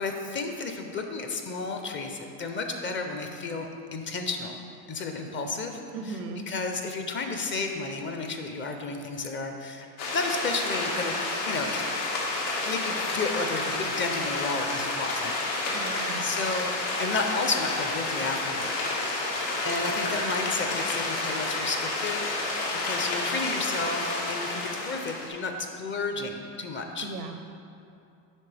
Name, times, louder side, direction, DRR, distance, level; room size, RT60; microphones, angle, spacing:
voice 1, 0.0-4.6 4.9-5.8 6.1-6.2 6.5-9.9 10.1-11.1 11.4-11.9 12.6-15.5 15.8-16.7 17.0-18.8 19.3-27.1, left 3 dB, 25° left, 4 dB, 0.5 m, -32 dB
voice 2, 5.9-6.5 15.7-16.3 27.0-27.5, right 4 dB, 85° right, 7 dB, 0.8 m, -37 dB
sound 1, 10.0-25.3, left 2 dB, 85° left, 1.7 m, -30 dB
8.4 x 5.7 x 3.3 m, 2.6 s
supercardioid pair, 110°, 48 cm